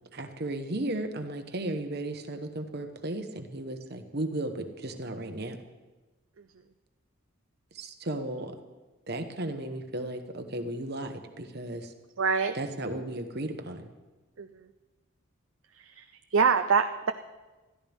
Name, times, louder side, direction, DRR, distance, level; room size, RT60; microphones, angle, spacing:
voice 1, 0.1-5.6 7.7-8.5 9.1-11.9 12.5-13.9, right 1 dB, 50° right, 6 dB, 1.2 m, -35 dB
voice 2, 12.2-12.6 14.4-14.7 15.7-17.1, right 5 dB, 70° right, 7 dB, 0.6 m, -26 dB
21.0 x 14.0 x 3.6 m, 1.2 s
head